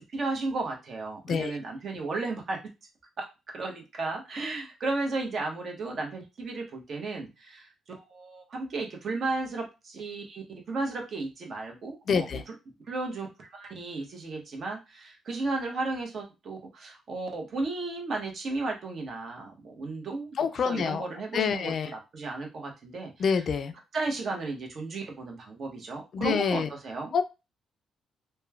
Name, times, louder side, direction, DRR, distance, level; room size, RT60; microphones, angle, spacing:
voice 1, 0.1-2.6 3.2-3.3 3.5-12.3 12.9-20.4 20.6-23.4 23.9-27.1, right 3 dB, 55° right, 1 dB, 0.8 m, -34 dB
voice 2, 1.3-1.6 12.1-12.4 20.4-21.1 21.3-21.9 23.2-23.7 26.1-26.7 27.1-27.2, left 6 dB, 55° left, 10 dB, 0.3 m, -27 dB
3.0 x 2.1 x 2.3 m, 0.26 s
cardioid pair, 90°, 0 cm